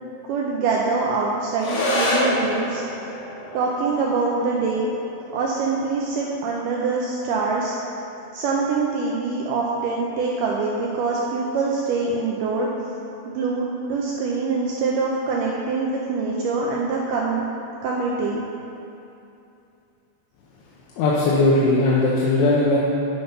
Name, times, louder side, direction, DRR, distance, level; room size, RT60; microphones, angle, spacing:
voice 1, 0.3-2.8 3.5-4.9 5.3-7.8 8.3-12.7 13.3-17.4 17.8-18.4, right 4 dB, 80° right, -3 dB, 2.0 m, -24 dB
sound 1, 1.6-10.6, left 1 dB, 65° left, 2.7 m, -30 dB
voice 2, 21.0-22.8, left 2 dB, 90° left, -5 dB, 2.8 m, -18 dB
9.4 x 5.8 x 5.4 m, 2.7 s
omnidirectional pair, 4.4 m